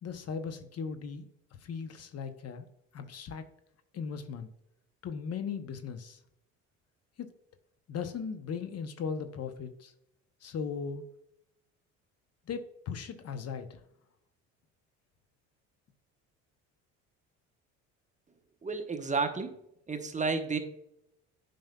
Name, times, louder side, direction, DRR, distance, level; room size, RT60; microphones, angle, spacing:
voice 1, 0.0-1.3 1.6-2.7 2.9-3.4 3.9-4.5 5.0-6.2 7.2-7.3 7.9-9.9 10.4-11.0 12.5-13.8, left 6 dB, 50° left, 9 dB, 0.8 m, -38 dB
voice 2, 18.6-19.6 19.9-20.6, right 4 dB, 20° right, 6 dB, 0.9 m, -31 dB
8.9 x 5.2 x 2.3 m, 0.77 s
supercardioid pair, 75°, 33 cm